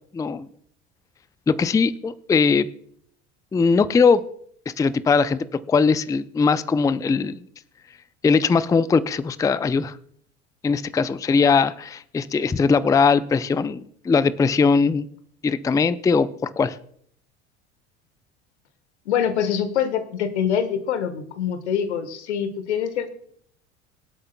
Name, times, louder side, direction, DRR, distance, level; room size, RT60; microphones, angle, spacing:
voice 1, 0.1-0.5 1.5-2.7 3.5-4.2 4.7-7.4 8.2-9.9 10.6-15.0 15.4-16.8, left 5 dB, 10° left, 16 dB, 0.4 m, -20 dB
voice 2, 19.1-23.1, left 8 dB, 80° left, 10 dB, 1.3 m, -24 dB
24.5 x 8.7 x 2.2 m, 0.65 s
hypercardioid pair, 70°, 34 cm